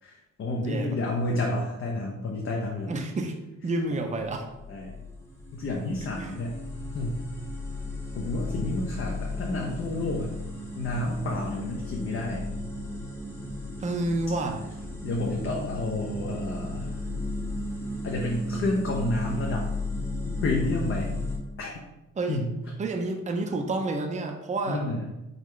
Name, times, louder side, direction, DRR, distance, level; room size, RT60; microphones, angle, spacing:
voice 1, 0.0-2.9 4.7-5.0 5.5-6.6 6.9-7.2 8.1-10.4 10.8-12.4 15.0-17.0 18.0-19.7 20.4-21.1 21.6-21.8 22.3-22.5 24.7-25.1, left 2 dB, 45° left, -1 dB, 0.7 m, -30 dB
voice 2, 2.9-3.3 3.6-4.5 6.2-6.3 13.8-14.6 22.2-22.4 22.8-24.8, right 2 dB, 25° right, 3 dB, 0.6 m, -29 dB
sound 1, 4.5-21.4, left 2 dB, 10° left, 0.9 m, -35 dB
3.9 x 3.3 x 3.1 m, 0.98 s
cardioid pair, 90°, 30 cm